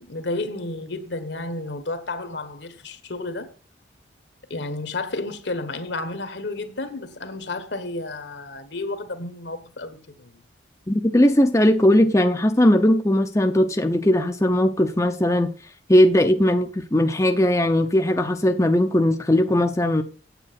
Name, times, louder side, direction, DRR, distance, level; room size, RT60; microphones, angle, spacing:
voice 1, 0.0-3.5 4.5-10.4, left 2 dB, 65° left, 1.4 m, -31 dB
voice 2, 10.9-15.5 15.9-20.0, left 1 dB, 15° left, 0.7 m, -19 dB
9.1 x 8.5 x 5.8 m
head